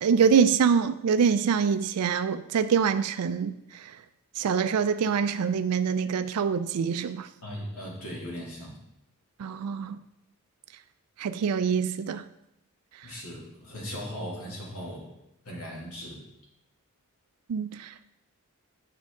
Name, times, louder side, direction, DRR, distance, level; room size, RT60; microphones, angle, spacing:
voice 1, 0.0-3.5 4.4-7.3 9.4-10.0 11.2-12.2 17.5-17.9, right 6 dB, 90° right, 0.4 m, -25 dB
voice 2, 7.4-8.8 13.0-15.1 15.4-16.2, equal, 80° left, 2.5 m, -38 dB
9.6 x 6.1 x 3.8 m
head